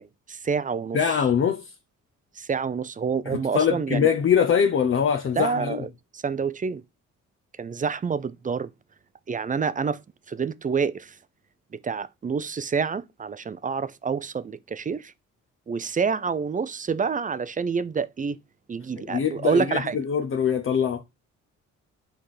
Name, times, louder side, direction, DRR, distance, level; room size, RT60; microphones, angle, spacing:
voice 1, 0.0-1.2 2.3-4.1 5.3-6.8 7.6-8.7 9.3-10.0 10.3-11.2 11.7-15.1 15.7-18.4 18.7-20.0, right 5 dB, 25° right, 0.6 m, -28 dB
voice 2, 0.9-1.7 3.3-5.8 19.1-21.0, left 7 dB, 45° left, 0.8 m, -23 dB
5.8 x 4.2 x 4.9 m
cardioid pair, 90°, 30 cm